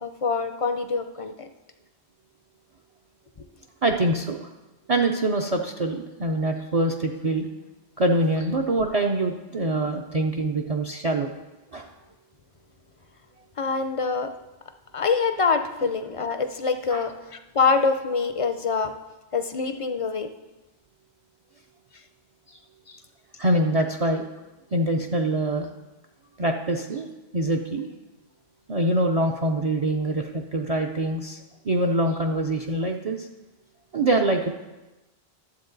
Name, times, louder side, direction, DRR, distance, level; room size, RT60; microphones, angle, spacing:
voice 1, 0.0-1.5 13.6-14.3 14.9-18.9 19.3-20.3 22.9-23.0, left 4 dB, 45° left, 8 dB, 0.5 m, -25 dB
voice 2, 3.8-4.5 4.9-7.5 8.0-11.3 11.7-11.9 16.9-17.0 23.4-24.2 24.7-25.7 26.4-27.1 27.3-27.9 28.7-31.4 31.6-33.3 33.9-34.5, right 1 dB, 45° right, 1 dB, 0.6 m, -24 dB
12.5 x 7.6 x 3.9 m, 1.1 s
omnidirectional pair, 1.0 m